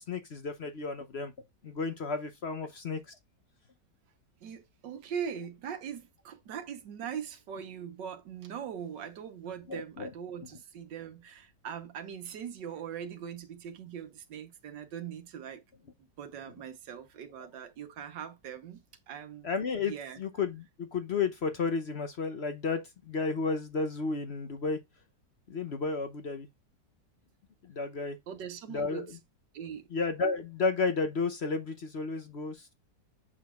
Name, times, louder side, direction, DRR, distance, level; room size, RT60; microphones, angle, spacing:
voice 1, 0.0-1.3 1.6-3.2 9.7-10.1 19.4-24.8 25.5-26.5 27.6-28.2 28.7-29.2 29.9-32.7, left 4 dB, 50° left, 0.8 m, -32 dB
voice 2, 4.4-15.6 16.0-18.8 19.1-19.5 19.9-20.2 28.3-29.2 29.5-29.9, right 8 dB, 90° right, 1.7 m, -41 dB
7.6 x 6.1 x 2.3 m
omnidirectional pair, 1.9 m